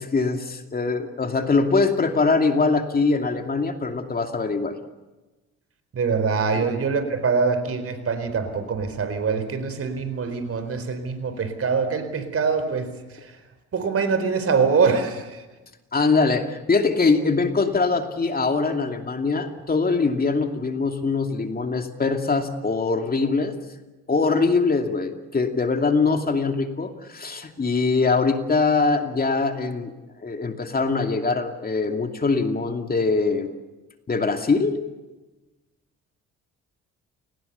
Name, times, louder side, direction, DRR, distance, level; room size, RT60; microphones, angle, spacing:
voice 1, 0.0-4.7 6.5-6.7 15.9-23.5 24.1-29.9 30.2-33.5 34.1-34.8, left 4 dB, 30° left, 6 dB, 2.6 m, -22 dB
voice 2, 5.9-12.9 13.1-13.3 13.7-15.4, right 5 dB, 50° right, 10 dB, 4.3 m, -24 dB
29.5 x 19.5 x 7.0 m, 1.1 s
cardioid pair, 95°, 30 cm